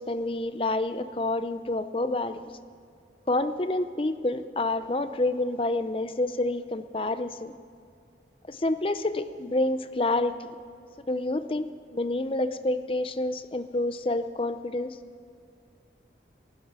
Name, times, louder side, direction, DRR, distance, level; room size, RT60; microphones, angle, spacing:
voice 1, 0.0-2.5 3.3-7.5 8.5-10.5 11.0-15.0, left 2 dB, 30° left, 12 dB, 0.6 m, -28 dB
14.0 x 11.5 x 8.8 m, 2.4 s
head